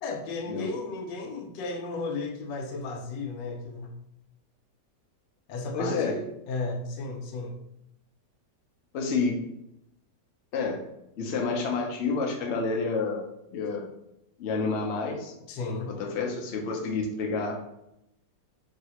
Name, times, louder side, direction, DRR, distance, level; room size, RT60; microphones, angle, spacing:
voice 1, 0.0-3.9 5.5-7.6 15.5-15.9, left 3 dB, 85° left, 4 dB, 1.3 m, -34 dB
voice 2, 5.7-6.2 8.9-9.4 10.5-10.8 11.2-13.9 14.4-15.3 15.9-17.6, left 4 dB, 70° left, 1 dB, 0.6 m, -29 dB
3.2 x 2.7 x 2.8 m, 0.82 s
omnidirectional pair, 1.9 m